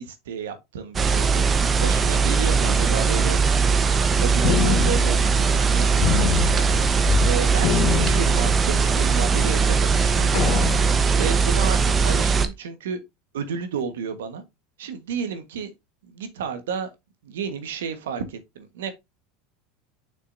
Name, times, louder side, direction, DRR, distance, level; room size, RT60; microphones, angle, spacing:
voice 1, 0.0-1.4 1.8-3.4 4.0-5.4 5.7-6.7 6.9-10.4 11.2-13.0 13.3-14.4 14.8-15.7 16.1-16.9 17.2-18.9, right 7 dB, 80° right, 1.4 m, -32 dB
sound 1, 0.9-12.5, right 5 dB, 25° right, 0.9 m, -20 dB
sound 2, 4.4-5.7 6.0-7.3 7.6-8.9 9.5-9.6 10.3-11.2, left 11 dB, 50° left, 1.0 m, -26 dB
6.7 x 6.1 x 2.6 m
hypercardioid pair, 95°, 0 cm